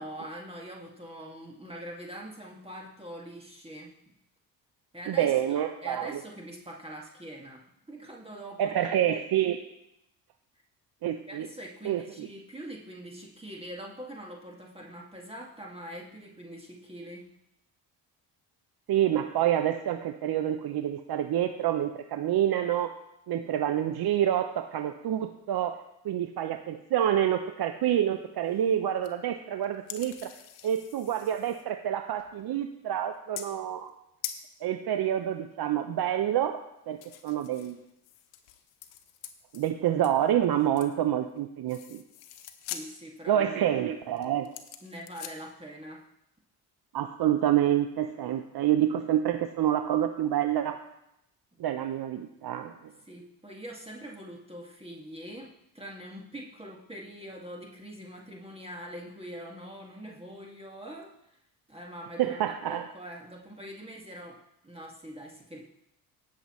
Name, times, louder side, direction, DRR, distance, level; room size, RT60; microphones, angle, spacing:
voice 1, 0.0-4.1 4.9-8.9 11.3-17.3 42.7-43.7 44.8-46.0 53.1-61.1 61.7-65.6, equal, 15° right, -1 dB, 2.0 m, -43 dB
voice 2, 5.1-6.2 8.6-9.6 11.0-11.5 11.8-12.3 18.9-22.9 23.3-30.3 30.6-33.9 34.6-36.6 36.9-37.0 37.2-37.8 39.5-42.0 43.3-44.5 46.9-50.8 51.6-52.9 62.2-62.9, right 11 dB, 55° right, 7 dB, 0.8 m, -27 dB
sound 1, 28.5-28.7 29.0-29.1 29.6-31.7 32.2-32.4 33.4-33.6 33.9-34.0 34.2-34.5 37.0-41.0 41.3-41.4 41.7-42.9 43.4-43.6 44.2-45.4, left 11 dB, 90° left, 0.9 m, -44 dB
18.5 x 7.0 x 3.1 m, 0.82 s
supercardioid pair, 65°, 44 cm